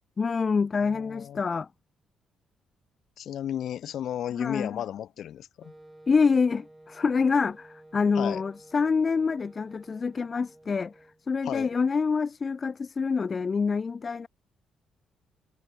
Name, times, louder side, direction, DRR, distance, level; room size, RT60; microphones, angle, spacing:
voice 1, 0.2-1.7 4.4-4.7 6.1-10.9 11.3-14.3, left 5 dB, 35° left, 0.7 m, -26 dB
voice 2, 0.8-1.4 3.2-5.7 8.1-8.4 11.4-11.7, left 10 dB, 70° left, 1.1 m, -34 dB
Wind instrument woodwind instrument, 5.6-11.3, right 1 dB, 10° right, 1.7 m, -53 dB
cardioid pair, 90°, 0 cm